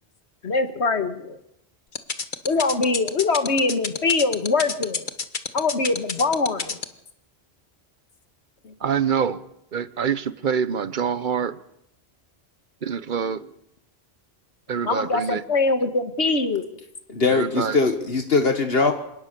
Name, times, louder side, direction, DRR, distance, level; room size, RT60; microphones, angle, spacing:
voice 1, 0.4-1.4 2.4-5.1 5.5-6.8 8.6-8.7 14.9-16.6, left 3 dB, 90° left, 2.1 m, -23 dB
sound 1, 2.0-6.8, left 5 dB, 50° left, 1.4 m, -27 dB
voice 2, 8.8-11.6 12.8-13.5 14.7-15.4 17.3-17.8, right 7 dB, 50° right, 1.1 m, -26 dB
voice 3, 17.1-18.9, left 4 dB, 65° left, 1.7 m, -21 dB
26.5 x 18.5 x 6.9 m
omnidirectional pair, 1.1 m